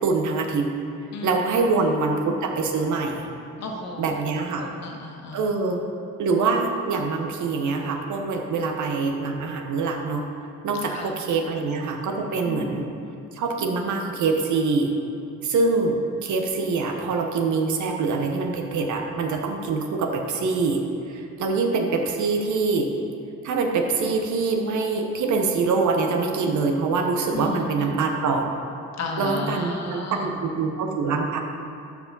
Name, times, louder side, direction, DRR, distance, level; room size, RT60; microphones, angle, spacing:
voice 1, 0.0-0.6 1.2-3.3 4.0-4.7 5.3-5.8 6.2-10.2 10.6-12.9 13.3-14.9 15.4-20.8 21.1-22.9 23.4-28.5 29.2-31.4, right 4 dB, 75° right, 3 dB, 1.1 m, -24 dB
voice 2, 1.1-1.9 2.2-2.5 3.6-5.4 10.9-11.1 12.4-12.7 27.3-28.0 29.0-30.3, left 3 dB, 60° left, 1 dB, 1.4 m, -34 dB
12.5 x 4.9 x 4.0 m, 2.6 s
cardioid pair, 90°, 30 cm